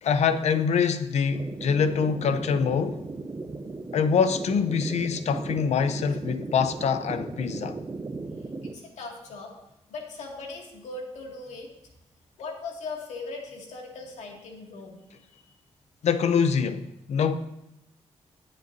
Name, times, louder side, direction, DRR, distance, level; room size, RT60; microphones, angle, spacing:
voice 1, 0.0-3.0 3.9-7.8 16.0-17.3, left 6 dB, 75° left, 0.7 m, -24 dB
sound 1, 1.3-8.7, right 3 dB, 25° right, 0.8 m, -36 dB
voice 2, 8.6-9.5 9.9-11.7 12.4-15.5, left 3 dB, 90° left, 2.3 m, -39 dB
19.0 x 7.7 x 2.7 m
cardioid pair, 100°, 12 cm